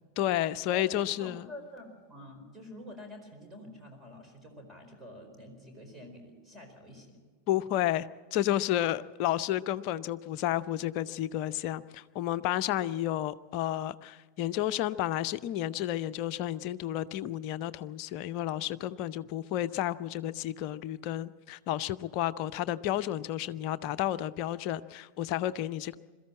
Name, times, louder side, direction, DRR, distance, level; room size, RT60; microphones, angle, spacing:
voice 1, 0.2-1.4 7.5-26.0, left 13 dB, 45° left, 14 dB, 0.6 m, -31 dB
voice 2, 0.7-7.2, left 1 dB, 10° right, 3 dB, 4.5 m, -47 dB
22.0 x 14.0 x 8.8 m, 1.5 s
figure-of-eight pair, 90°, 0 cm